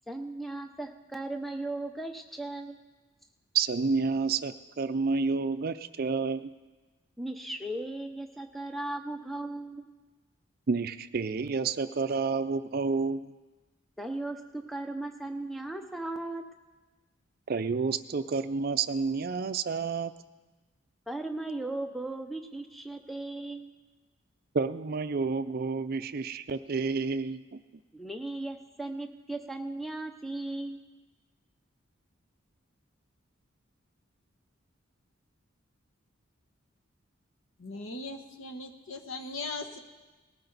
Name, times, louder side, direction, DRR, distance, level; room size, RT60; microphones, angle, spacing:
voice 1, 0.1-2.8 7.2-9.8 14.0-16.4 21.1-23.7 27.9-30.8, right 2 dB, ahead, 5 dB, 0.7 m, -37 dB
voice 2, 3.5-6.5 10.7-13.3 17.5-20.1 24.5-27.6, right 4 dB, 45° right, 12 dB, 0.4 m, -29 dB
voice 3, 37.6-39.8, left 3 dB, 85° left, 5 dB, 1.2 m, -39 dB
19.5 x 13.5 x 4.0 m, 1.2 s
head